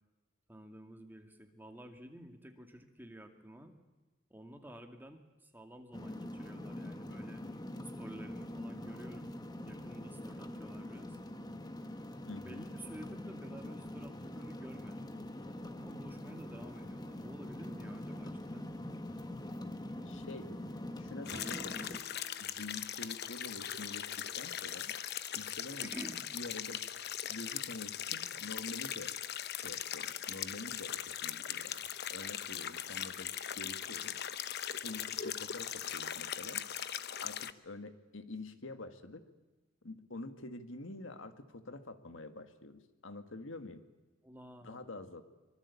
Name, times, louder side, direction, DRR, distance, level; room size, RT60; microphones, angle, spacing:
voice 1, 0.5-3.7 4.3-7.4 8.0-9.4 9.6-11.2 12.4-15.2 15.8-18.7 25.8-26.3 44.2-45.1, equal, 10° right, 5 dB, 2.3 m, -51 dB
driving with wipers, 5.9-22.0, left 1 dB, 20° left, 1.4 m, -44 dB
voice 2, 12.3-12.6 20.1-20.5 21.0-21.8 22.4-24.9 25.4-25.9 26.3-26.8 27.3-29.1 29.5-31.8 32.1-34.2 34.8-36.6 37.2-39.2 39.8-43.8 44.6-45.2, left 2 dB, 70° left, 9 dB, 1.9 m, -47 dB
sound 1, 21.3-37.5, left 10 dB, 55° left, 1.0 m, -40 dB
sound 2, 21.3-24.5, right 2 dB, 60° right, 2.6 m, -56 dB
24.5 x 24.0 x 8.5 m, 1.2 s
head